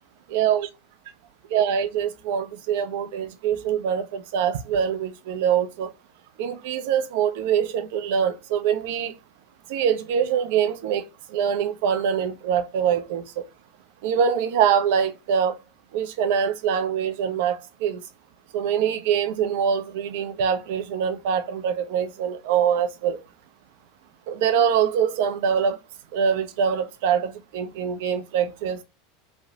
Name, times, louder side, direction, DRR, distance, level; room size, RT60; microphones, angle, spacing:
voice 1, 0.3-0.7 1.5-5.9 6.4-9.1 9.7-13.4 14.0-15.5 15.9-18.0 18.5-23.2 24.3-25.8 26.1-28.8, right 8 dB, 60° right, 0.5 m, -24 dB
3.1 x 2.7 x 2.7 m
figure-of-eight pair, 85°, 0 cm